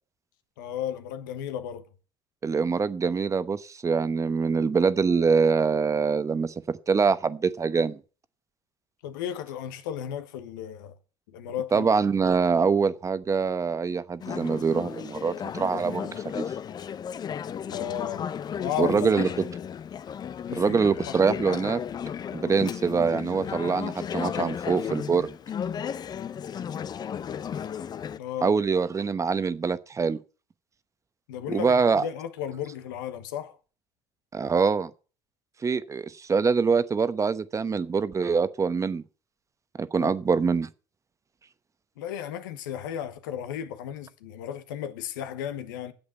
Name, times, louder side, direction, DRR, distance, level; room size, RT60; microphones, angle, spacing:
voice 1, 0.6-1.9 9.0-10.9 11.3-11.9 17.7-18.3 18.6-19.0 20.5-20.7 21.1-21.2 28.2-28.5 31.3-33.6 40.0-40.1 42.0-45.9, left 10 dB, 85° left, 1.2 m, -34 dB
voice 2, 2.4-8.0 11.7-16.4 18.8-19.3 20.5-21.8 22.3-25.3 28.4-30.2 31.5-32.0 34.3-34.9 35.6-39.0 39.8-40.7, right 5 dB, 30° right, 1.0 m, -24 dB
Conversation / Chatter, 14.2-28.2, left 8 dB, 40° left, 0.6 m, -34 dB
8.9 x 7.9 x 8.1 m
hypercardioid pair, 70°, 10 cm